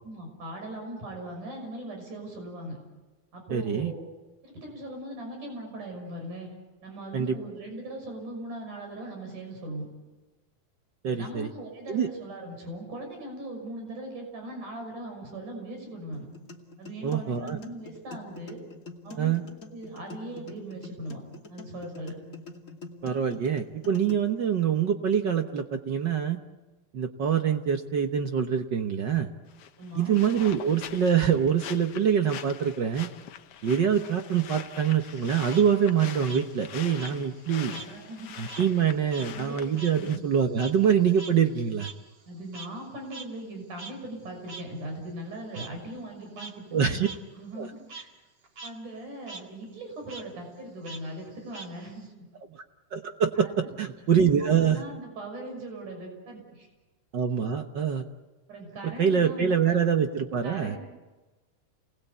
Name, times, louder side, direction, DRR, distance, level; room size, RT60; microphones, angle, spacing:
voice 1, 0.0-2.8 3.3-4.1 4.4-6.5 6.8-9.9 11.2-16.3 16.8-18.6 19.0-19.4 19.6-21.2 21.5-22.2 29.8-30.2 37.7-38.3 39.2-39.6 39.9-40.2 42.3-47.1 47.4-48.1 48.6-52.1 53.4-53.7 54.4-56.7 58.5-59.8 60.4-60.8, right 1 dB, 80° right, 3 dB, 7.8 m, -39 dB
voice 2, 3.5-3.9 7.1-7.4 11.0-11.5 11.9-12.1 17.0-17.6 19.2-19.4 23.0-26.4 26.9-29.3 30.0-33.1 33.6-37.7 38.4-41.9 46.7-47.1 47.6-47.7 52.9-54.8 57.1-58.1 58.8-60.8, right 7 dB, 65° right, 6 dB, 1.1 m, -25 dB
sound 1, 16.1-24.1, left 3 dB, 25° left, 2.4 m, -45 dB
sound 2, 29.5-40.2, left 9 dB, 65° left, 1.5 m, -44 dB
Frog, 35.0-37.9 38.2-42.9 43.1-43.2 43.8-43.9 44.5-44.6 45.5-45.7 46.2-46.5 47.0-47.2 47.5-48.0 48.4-48.7 49.0-49.4 50.1-50.2 50.8-52.1, right 4 dB, 40° right, 2.6 m, -43 dB
30.0 x 20.5 x 8.3 m, 1.2 s
omnidirectional pair, 3.5 m